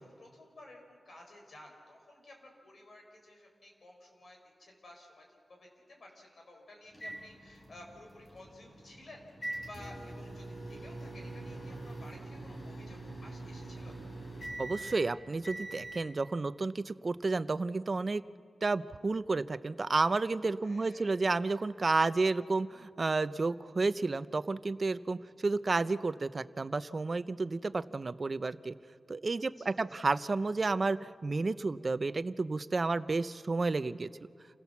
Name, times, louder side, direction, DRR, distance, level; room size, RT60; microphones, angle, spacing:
voice 1, 0.0-14.0 20.6-21.2 29.6-29.8, left 1 dB, 65° left, 1 dB, 5.4 m, -54 dB
sound 1, 6.9-16.0, right 2 dB, 45° left, 4.6 m, -44 dB
voice 2, 14.6-18.2 18.6-28.7 29.1-34.1, right 3 dB, 45° right, 13 dB, 0.7 m, -31 dB
28.5 x 17.0 x 7.2 m, 2.3 s
cardioid pair, 65°, 0 cm